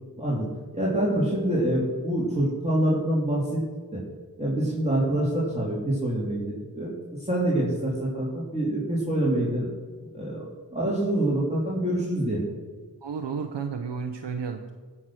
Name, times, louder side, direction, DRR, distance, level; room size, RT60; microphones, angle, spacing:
voice 1, 0.7-3.6 3.9-4.0 4.4-6.9 7.3-9.7 10.1-12.5, right 1 dB, 15° right, -6 dB, 3.1 m, -26 dB
voice 2, 13.0-14.7, right 6 dB, 90° right, 5 dB, 0.8 m, -32 dB
16.0 x 6.0 x 6.2 m, 1.4 s
wide cardioid pair, 50°, 42 cm